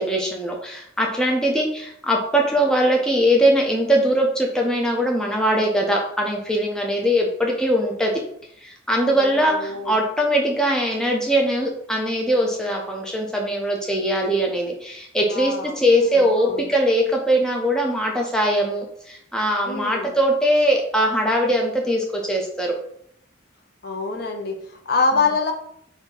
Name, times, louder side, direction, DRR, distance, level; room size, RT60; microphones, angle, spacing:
voice 1, 0.0-8.1 8.6-22.7, equal, 5° left, 0 dB, 0.4 m, -21 dB
voice 2, 9.1-10.0 15.3-16.7 19.6-20.2 23.8-25.5, left 4 dB, 50° left, 4 dB, 0.6 m, -26 dB
3.7 x 2.7 x 3.9 m, 0.69 s
head